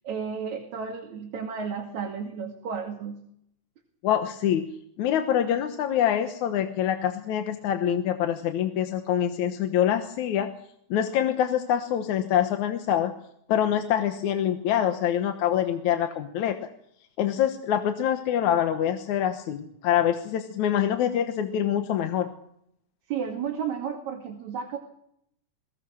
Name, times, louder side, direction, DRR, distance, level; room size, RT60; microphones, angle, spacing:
voice 1, 0.0-3.2 23.1-24.8, right 6 dB, 70° right, 2 dB, 3.7 m, -32 dB
voice 2, 4.0-4.7 5.0-10.5 10.9-13.1 13.5-16.6 17.2-22.3, left 10 dB, 80° left, 7 dB, 2.6 m, -25 dB
22.0 x 20.0 x 6.3 m, 0.72 s
omnidirectional pair, 3.4 m